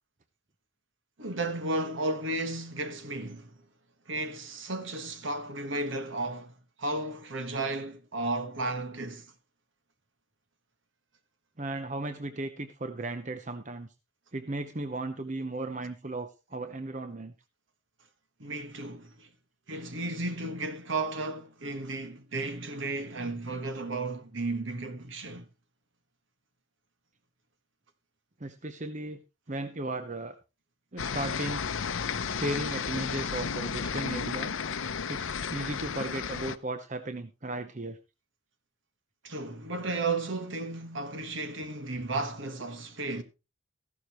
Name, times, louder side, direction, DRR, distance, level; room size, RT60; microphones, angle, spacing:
voice 1, 1.2-3.6 4.1-9.3 18.4-19.3 19.7-25.5 39.2-43.2, right 2 dB, 65° right, 1.6 m, -34 dB
voice 2, 11.6-13.9 14.3-17.3 28.4-29.2 29.5-30.3 30.9-31.7 32.4-34.5 35.1-38.0, right 2 dB, 35° right, 0.8 m, -36 dB
sound 1, 31.0-36.6, left 6 dB, 75° left, 0.7 m, -33 dB
14.5 x 11.5 x 3.1 m
head